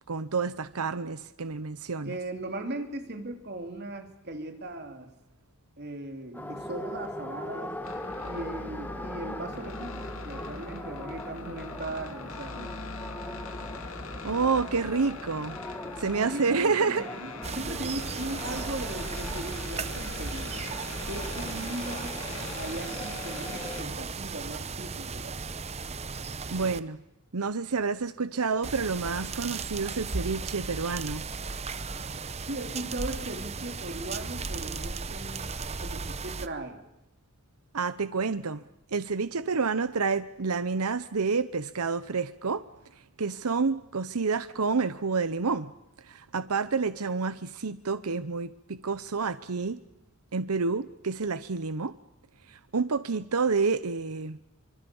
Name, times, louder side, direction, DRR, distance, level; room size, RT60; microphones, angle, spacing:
voice 1, 0.1-2.1 14.2-15.6 16.0-17.0 26.5-27.0 27.3-31.2 37.7-38.6 38.9-42.6 43.2-45.7 46.0-49.8 50.3-51.9 52.5-54.4, right 4 dB, 80° right, 13 dB, 0.9 m, -29 dB
voice 2, 2.0-5.1 5.8-7.7 8.3-12.7 16.1-20.6 21.1-22.2 22.6-25.3 32.5-35.4 35.8-36.8, right 1 dB, 45° right, 5 dB, 3.5 m, -38 dB
sound 1, 6.3-23.9, left 1 dB, 10° left, 1.8 m, -41 dB
sound 2, 7.8-23.8, left 3 dB, 65° left, 2.5 m, -41 dB
sound 3, 17.4-26.8 28.6-36.5, right 4 dB, 30° right, 0.8 m, -36 dB
26.0 x 25.0 x 7.1 m, 0.91 s
head